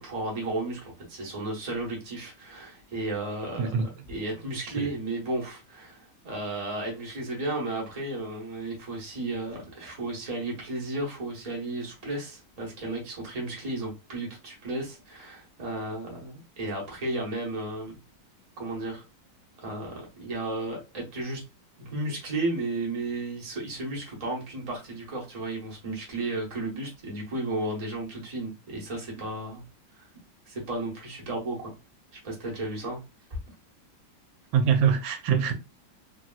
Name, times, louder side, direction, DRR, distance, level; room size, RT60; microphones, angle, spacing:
voice 1, 0.0-3.7 4.1-18.0 18.6-19.0 19.6-21.4 21.8-29.6 29.9-30.1 30.5-31.7 32.2-33.0, right 2 dB, 30° right, 0.8 m, -33 dB
voice 2, 34.5-35.5, right 7 dB, 85° right, 1.3 m, -24 dB
3.1 x 2.7 x 2.3 m
omnidirectional pair, 2.0 m